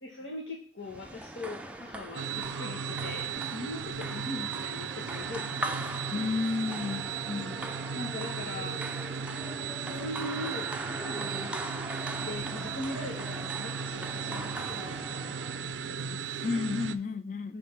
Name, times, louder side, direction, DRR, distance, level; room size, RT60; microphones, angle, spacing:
voice 1, 0.0-5.9 7.3-7.6 7.9-8.8 9.8-11.9 12.2-16.6 17.5-17.6, left 2 dB, 80° left, 1.4 m, -41 dB
sound 1, 0.8-15.7, right 1 dB, 5° right, 0.4 m, -40 dB
sound 2, 2.1-17.0, right 7 dB, 85° right, 0.4 m, -36 dB
voice 2, 6.1-7.0 16.4-17.5, left 4 dB, 45° left, 0.5 m, -31 dB
5.9 x 3.7 x 6.0 m
head